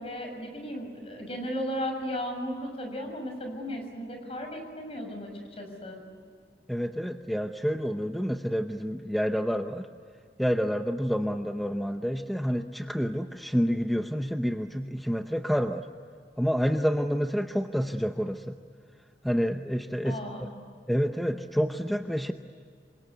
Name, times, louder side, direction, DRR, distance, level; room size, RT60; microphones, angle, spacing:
voice 1, 0.0-6.0 20.1-20.6, equal, 35° left, 3 dB, 6.9 m, -35 dB
voice 2, 6.7-9.9 10.4-15.9 16.4-18.6 19.2-20.5 20.9-22.3, equal, ahead, 6 dB, 0.8 m, -28 dB
28.0 x 25.0 x 8.3 m, 2.2 s
head